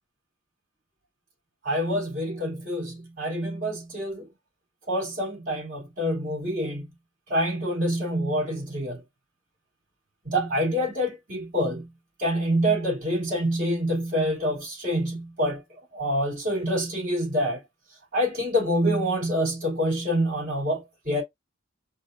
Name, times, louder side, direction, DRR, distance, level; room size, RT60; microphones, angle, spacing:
voice 1, 1.6-4.3 4.9-6.9 7.3-9.0 10.2-11.9 12.2-15.6 15.9-17.6 18.1-21.2, equal, 40° right, 3.6 m, -26 dB
5.2 x 2.9 x 2.7 m
head